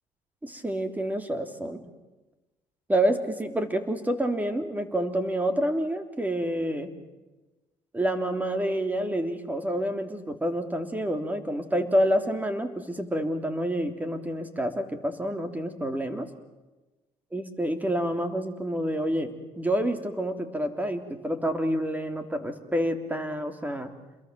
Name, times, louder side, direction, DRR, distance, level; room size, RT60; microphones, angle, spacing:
voice 1, 0.4-1.8 2.9-6.9 7.9-16.3 17.3-23.9, equal, 10° right, 8 dB, 3.3 m, -28 dB
28.5 x 22.0 x 7.7 m, 1.1 s
supercardioid pair, 85°, 13 cm